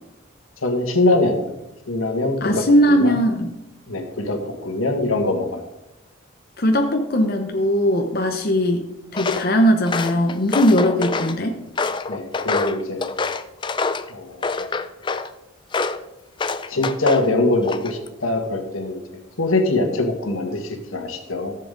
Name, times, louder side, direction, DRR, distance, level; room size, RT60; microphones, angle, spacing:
voice 1, 0.6-1.4 1.9-3.2 3.9-5.6 12.1-13.0 14.1-14.6 16.7-19.0 19.4-21.5, left 2 dB, 90° left, 5 dB, 1.6 m, -23 dB
voice 2, 2.4-3.5 6.6-8.9 9.1-11.6, equal, 45° left, 3 dB, 0.8 m, -19 dB
Walk footsteps, 9.1-9.5 9.9-11.4 11.8-14.1 14.4-15.3 15.7-16.0 16.4-17.3 17.6-18.1, left 4 dB, 25° left, 0.4 m, -26 dB
14.0 x 7.5 x 3.9 m, 0.93 s
head